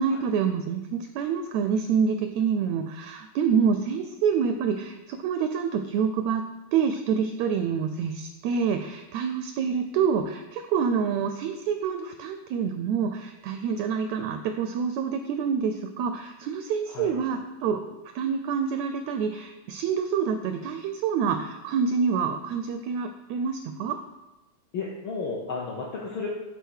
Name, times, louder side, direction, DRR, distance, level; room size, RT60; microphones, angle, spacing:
voice 1, 0.0-6.4 6.7-24.0, right 6 dB, 85° right, 7 dB, 1.6 m, -27 dB
voice 2, 24.7-26.3, left 4 dB, 90° left, -3 dB, 1.1 m, -33 dB
8.3 x 3.8 x 6.3 m, 1.0 s
omnidirectional pair, 3.6 m